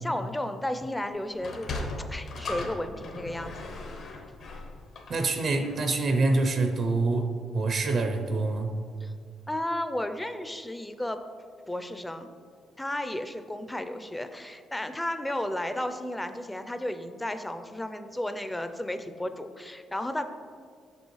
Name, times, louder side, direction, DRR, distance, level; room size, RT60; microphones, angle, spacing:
voice 1, 0.0-3.5 4.1-4.2 9.0-9.1 9.5-11.2 11.7-12.3 12.8-20.2, left 1 dB, 10° left, 9 dB, 0.4 m, -33 dB
Sliding door, 1.3-6.0, left 2 dB, 65° left, 0.8 m, -38 dB
voice 2, 5.1-7.3 7.5-8.7, right 3 dB, 55° right, 5 dB, 0.6 m, -26 dB
6.1 x 5.4 x 3.1 m, 2.1 s
cardioid pair, 90°, 0 cm